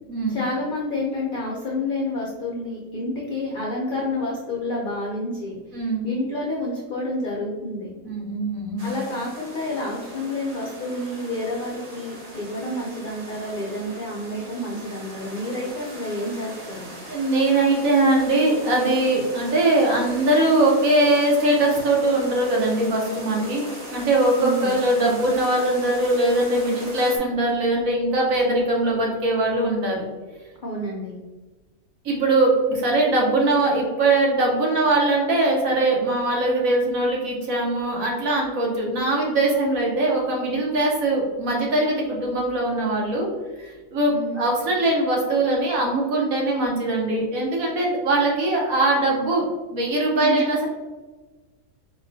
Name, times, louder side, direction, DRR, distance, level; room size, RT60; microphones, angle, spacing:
voice 1, 0.3-5.6 6.0-7.9 8.8-16.9 24.4-24.8 30.6-31.1 44.1-44.4 50.2-50.5, left 1 dB, 65° left, -3 dB, 0.5 m, -29 dB
voice 2, 5.7-6.1 8.0-8.9 17.1-30.0 32.0-43.3 43.6-49.4 49.7-50.6, right 2 dB, 65° right, -2 dB, 1.3 m, -21 dB
sound 1, 8.8-27.2, right 1 dB, 85° right, 0.3 m, -39 dB
4.5 x 2.3 x 2.6 m, 1.2 s
omnidirectional pair, 1.6 m